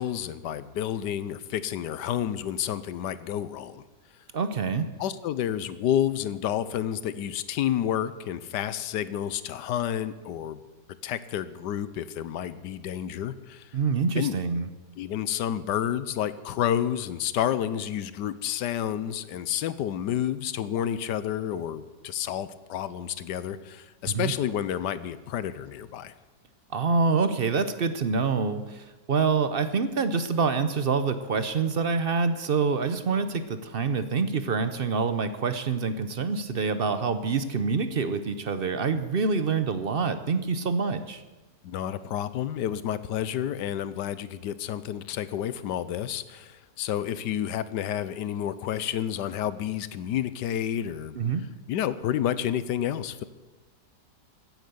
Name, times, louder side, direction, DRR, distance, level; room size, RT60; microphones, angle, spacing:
voice 1, 0.0-3.8 5.0-10.6 11.0-13.7 14.2-14.3 15.0-26.1 41.6-51.2 51.7-53.2, left 10 dB, 85° left, 15 dB, 1.3 m, -30 dB
voice 2, 4.3-4.9 13.7-14.7 24.1-24.3 26.7-41.2 51.2-51.4, right 5 dB, 50° right, 11 dB, 0.7 m, -26 dB
15.5 x 9.3 x 6.8 m, 1.2 s
omnidirectional pair, 1.8 m